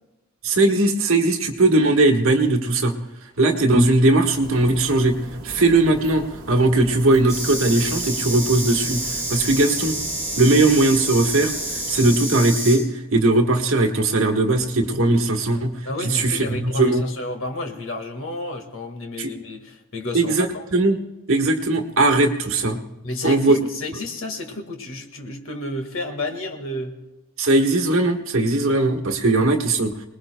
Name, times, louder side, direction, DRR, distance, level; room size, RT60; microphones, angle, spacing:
voice 1, 0.4-2.9 3.4-5.2 5.4-10.0 10.4-11.5 11.9-12.8 13.1-15.7 16.0-17.0 19.2-19.3 20.1-20.5 20.7-21.0 21.3-22.8 23.2-23.6 27.4-29.9, right 2 dB, 65° right, 3 dB, 1.4 m, -19 dB
sound 1, 4.3-12.1, right 1 dB, 40° right, 2.1 m, -39 dB
sound 2, 7.3-12.8, right 1 dB, 15° left, 7.6 m, -28 dB
voice 2, 15.9-20.7 23.0-27.0, left 2 dB, 65° left, 4 dB, 1.7 m, -31 dB
26.0 x 20.0 x 2.2 m, 0.99 s
head